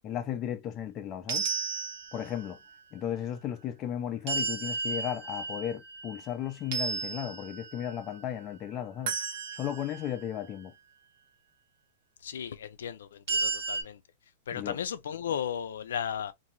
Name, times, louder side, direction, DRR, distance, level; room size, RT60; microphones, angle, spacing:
voice 1, 0.0-1.5 2.1-2.6 2.9-9.1 9.5-10.7 14.5-14.8, left 10 dB, 25° left, 0.5 m, -35 dB
sound 1, 1.3-2.5 4.3-6.3 6.7-7.9 9.1-10.1 13.3-13.8, right 4 dB, 55° right, 1.0 m, -33 dB
voice 2, 12.2-14.0 14.5-16.3, left 8 dB, 85° left, 0.4 m, -35 dB
3.0 x 2.6 x 2.4 m
supercardioid pair, 150°, 0 cm